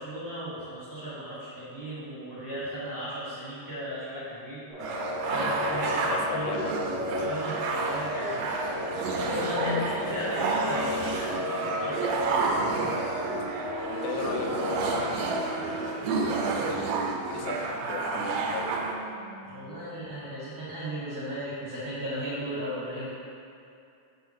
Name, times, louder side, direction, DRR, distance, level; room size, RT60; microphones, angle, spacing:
voice 1, 0.0-4.6 5.0-6.5 7.2-8.4 9.2-12.0 19.4-23.1, right 1 dB, 50° right, -10 dB, 1.4 m, -36 dB
sound 1, 4.7-14.8, left 2 dB, 35° left, 1.3 m, -34 dB
sound 2, 4.8-18.9, right 4 dB, 80° right, 1.5 m, -30 dB
voice 2, 5.3-5.6 6.0-6.8 9.5-9.9 10.9-11.5 13.9-18.9, left 6 dB, 85° left, 1 dB, 2.1 m, -37 dB
Wind instrument woodwind instrument, 9.7-20.9, right 1 dB, 70° left, 1.3 m, -43 dB
6.7 x 4.5 x 3.5 m, 2.5 s
omnidirectional pair, 3.6 m